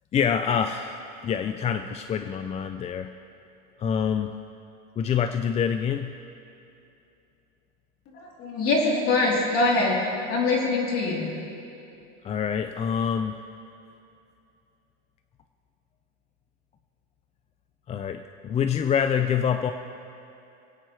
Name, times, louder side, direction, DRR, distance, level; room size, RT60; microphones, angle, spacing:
voice 1, 0.1-3.1 3.8-4.3 5.0-6.2 12.2-13.4 17.9-19.7, left 7 dB, 20° left, 8 dB, 0.4 m, -26 dB
voice 2, 8.1-10.0 10.3-11.3, left 3 dB, 45° left, -3 dB, 3.5 m, -23 dB
27.0 x 9.1 x 3.2 m, 2.7 s
supercardioid pair, 125°, 32 cm